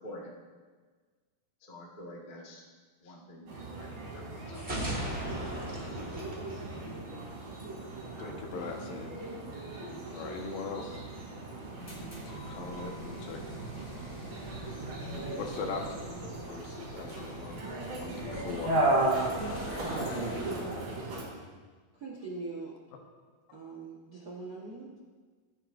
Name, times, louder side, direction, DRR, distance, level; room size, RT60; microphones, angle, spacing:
voice 1, 0.0-0.3 1.7-2.6 3.0-4.9, left 1 dB, 70° left, -3 dB, 0.4 m, -47 dB
sound 1, 3.5-21.2, right 2 dB, 75° right, 4.6 m, -36 dB
sound 2, 4.5-7.4, right 1 dB, 25° right, 1.4 m, -37 dB
voice 2, 8.2-9.2 10.1-11.0 12.0-13.4 15.3-17.7 18.0-18.7, left 4 dB, 85° left, 2 dB, 3.0 m, -40 dB
sound 3, 11.6-20.9, equal, 30° left, 0.7 m, -43 dB
voice 3, 21.9-22.7 23.5-25.0, right 3 dB, 55° right, -4 dB, 1.0 m, -42 dB
23.0 x 8.7 x 2.6 m, 1.4 s
omnidirectional pair, 3.9 m